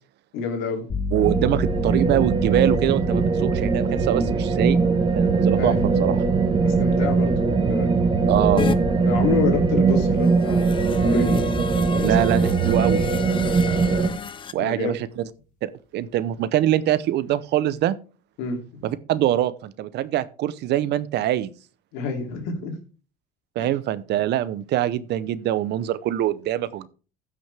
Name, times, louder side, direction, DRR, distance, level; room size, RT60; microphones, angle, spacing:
voice 1, 0.3-0.9 5.6-5.9 6.6-7.9 9.1-11.4 11.9-12.1 14.6-15.0 18.4-18.9 21.9-22.7, left 4 dB, 80° left, 3.0 m, -28 dB
sound 1, 0.9-11.4, left 1 dB, 40° left, 4.7 m, -35 dB
voice 2, 1.1-4.8 5.2-6.2 8.3-8.6 12.0-13.1 14.5-15.2 15.6-18.0 18.8-21.5 23.6-26.9, right 12 dB, 55° right, 0.7 m, -23 dB
sound 2, 1.2-14.1, right 4 dB, 25° right, 1.3 m, -21 dB
sound 3, 8.6-8.8 10.2-14.5, left 6 dB, 25° left, 0.6 m, -32 dB
15.0 x 6.2 x 3.4 m
cardioid pair, 125°, 20 cm